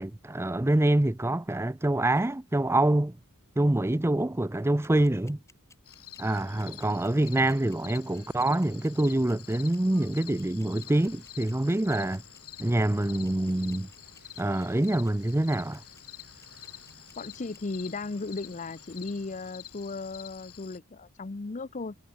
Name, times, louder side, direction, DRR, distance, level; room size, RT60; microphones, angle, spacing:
voice 1, 0.0-3.2 3.6-5.4 6.2-12.2 12.6-13.9 14.4-15.8, right 1 dB, 10° right, 0.5 m, -26 dB
sound 1, 4.8-17.6, left 3 dB, 15° left, 3.2 m, -56 dB
sound 2, 5.9-20.8, left 13 dB, 85° left, 5.2 m, -48 dB
sound 3, 6.2-19.5, right 5 dB, 55° right, 7.9 m, -57 dB
voice 2, 17.2-22.0, left 3 dB, 35° left, 0.6 m, -36 dB
head